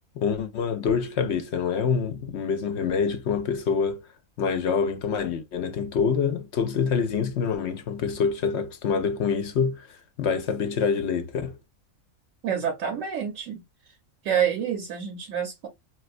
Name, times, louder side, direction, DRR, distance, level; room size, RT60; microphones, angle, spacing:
voice 1, 0.2-4.0 4.4-9.9 10.2-11.5, left 6 dB, 65° left, 0.7 m, -26 dB
voice 2, 12.4-13.6 14.2-15.7, right 8 dB, 70° right, 1.0 m, -27 dB
4.0 x 2.2 x 2.5 m
omnidirectional pair, 1.5 m